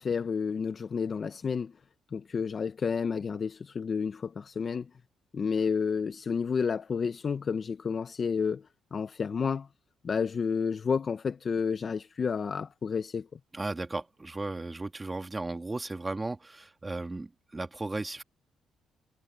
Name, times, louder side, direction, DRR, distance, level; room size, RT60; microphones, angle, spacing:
voice 1, 0.0-1.7 2.1-4.9 5.3-9.7 10.0-13.4, left 6 dB, 45° left, 0.8 m, -30 dB
voice 2, 13.5-18.2, right 2 dB, 20° right, 2.2 m, -35 dB
cardioid pair, 90°, 0 cm